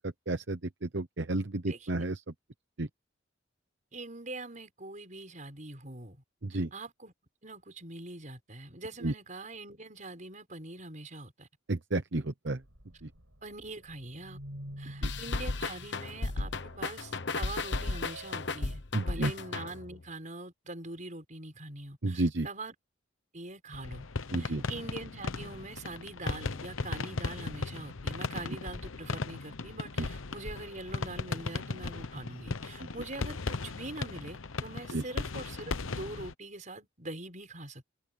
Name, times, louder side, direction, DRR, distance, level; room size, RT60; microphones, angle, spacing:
voice 1, 0.0-2.2 2.8-2.9 6.4-6.7 9.0-9.1 11.7-12.6 15.0-15.1 18.9-19.3 22.0-22.5 24.3-24.6 30.0-30.1 34.9-35.0, right 2 dB, 60° right, 0.9 m, -31 dB
voice 2, 3.9-6.2 6.5-7.1 7.4-11.5 13.4-14.4 14.8-22.7 23.3-24.0 24.3-37.9, right 2 dB, 40° right, 6.0 m, -43 dB
sound 1, 12.6-18.8, right 1 dB, 85° right, 6.4 m, -49 dB
sound 2, 15.0-20.0, left 3 dB, 60° left, 1.2 m, -34 dB
sound 3, 23.7-36.3, left 3 dB, 85° left, 1.0 m, -37 dB
head